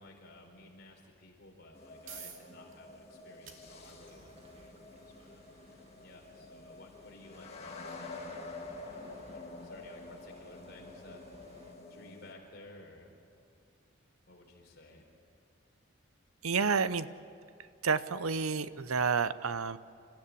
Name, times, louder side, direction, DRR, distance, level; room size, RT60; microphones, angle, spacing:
voice 1, 0.0-11.2 11.9-13.1 14.3-15.1, left 2 dB, 50° left, 1 dB, 4.5 m, -55 dB
sound 1, 1.7-12.3, left 3 dB, 30° left, 1.9 m, -48 dB
sound 2, 2.0-16.4, right 7 dB, 65° right, 2.6 m, -59 dB
sound 3, 3.6-11.7, equal, 30° right, 2.1 m, -61 dB
voice 2, 16.4-17.1 17.8-19.8, right 5 dB, 90° right, 14 dB, 0.8 m, -30 dB
28.5 x 15.0 x 8.5 m, 2.5 s
head